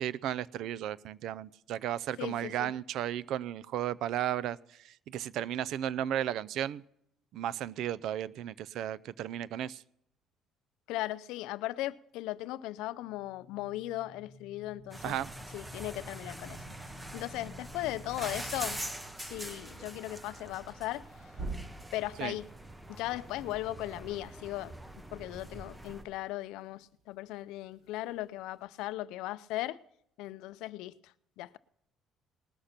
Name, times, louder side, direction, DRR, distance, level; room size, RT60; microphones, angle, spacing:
voice 1, 0.0-4.6 4.8-6.8 7.3-9.8 15.0-15.3 22.2-22.4, right 11 dB, 70° right, 0.4 m, -34 dB
voice 2, 2.2-2.7 10.9-15.2 15.5-16.6 17.1-18.8 19.2-21.1 21.9-22.5 22.9-24.7 25.1-29.8 30.2-31.6, left 16 dB, 90° left, 0.4 m, -37 dB
sound 1, 13.0-18.8 21.3-22.1, right 1 dB, 50° right, 7.0 m, -46 dB
sound 2, 14.9-26.0, right 1 dB, 10° right, 0.9 m, -44 dB
19.5 x 6.6 x 5.7 m
cardioid pair, 130°, 0 cm